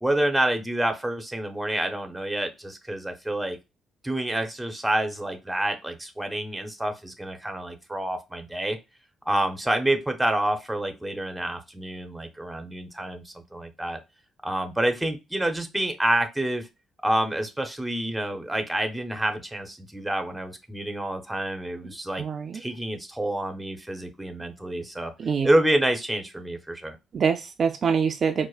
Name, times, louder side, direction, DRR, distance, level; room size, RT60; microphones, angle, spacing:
voice 1, 0.0-3.6 4.0-8.8 9.3-14.0 14.4-16.7 17.0-22.3 22.5-25.1 25.4-27.0, right 1 dB, 5° right, 5 dB, 0.7 m, -28 dB
voice 2, 22.2-22.6 25.2-25.5 27.1-28.5, right 6 dB, 50° right, 5 dB, 0.4 m, -25 dB
4.5 x 2.1 x 2.4 m, 0.24 s
cardioid pair, 90°, 0 cm